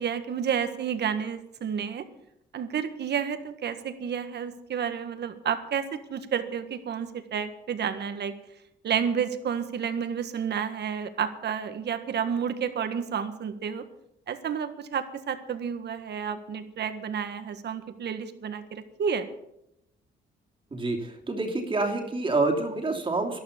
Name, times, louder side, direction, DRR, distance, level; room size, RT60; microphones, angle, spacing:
voice 1, 0.0-2.0 2.5-8.3 8.8-13.8 14.3-19.3, right 7 dB, 60° right, 9 dB, 1.7 m, -30 dB
voice 2, 20.7-23.4, right 3 dB, 25° right, 0 dB, 2.8 m, -27 dB
12.0 x 12.0 x 6.8 m, 0.81 s
cardioid pair, 90°, 20 cm